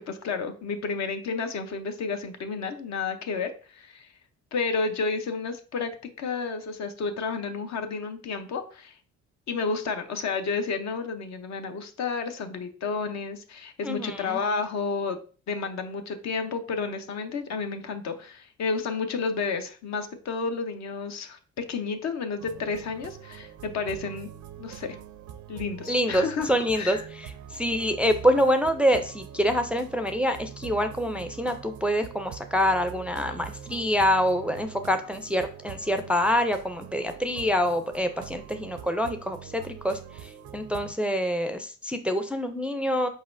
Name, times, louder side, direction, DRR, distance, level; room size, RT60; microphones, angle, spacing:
voice 1, 0.0-4.1 4.5-5.9 6.2-9.0 9.5-15.2 15.5-24.3 24.6-25.0 25.5-27.0, left 4 dB, 65° left, 7 dB, 0.7 m, -31 dB
voice 2, 13.8-14.4 25.9-43.1, equal, 5° right, 7 dB, 0.4 m, -26 dB
sound 1, 22.4-40.9, right 9 dB, 75° right, 0.5 m, -44 dB
4.8 x 4.1 x 2.5 m, 0.40 s
cardioid pair, 90°, 30 cm